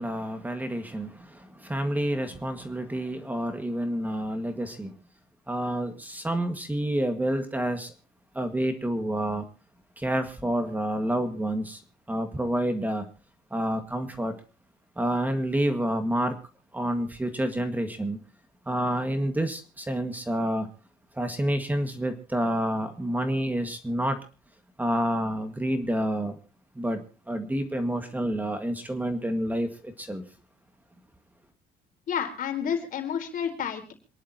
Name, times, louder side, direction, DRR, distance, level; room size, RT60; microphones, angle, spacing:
voice 1, 0.0-4.9 5.5-7.9 8.3-9.5 10.0-11.8 12.1-13.1 13.5-14.3 15.0-16.4 16.7-18.2 18.7-20.7 21.1-24.2 24.8-26.4 26.8-30.2, right 1 dB, 10° right, 1.9 m, -28 dB
voice 2, 32.1-33.9, left 8 dB, 55° left, 4.3 m, -30 dB
27.5 x 11.0 x 2.9 m
cardioid pair, 115°, 17 cm